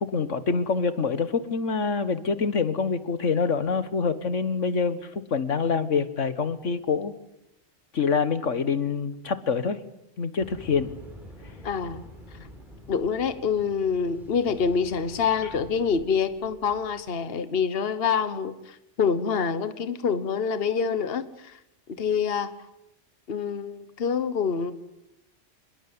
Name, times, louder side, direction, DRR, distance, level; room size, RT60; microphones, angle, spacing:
voice 1, 0.0-5.0 5.3-7.1 7.9-9.8 10.2-10.9, left 5 dB, 75° left, 12 dB, 1.7 m, -26 dB
sound 1, 10.4-17.1, left 1 dB, ahead, 6.7 m, -47 dB
voice 2, 11.6-12.0 12.9-21.6 22.0-22.5 23.3-24.7, left 6 dB, 50° left, 12 dB, 1.4 m, -26 dB
27.0 x 21.0 x 9.7 m, 0.86 s
omnidirectional pair, 1.3 m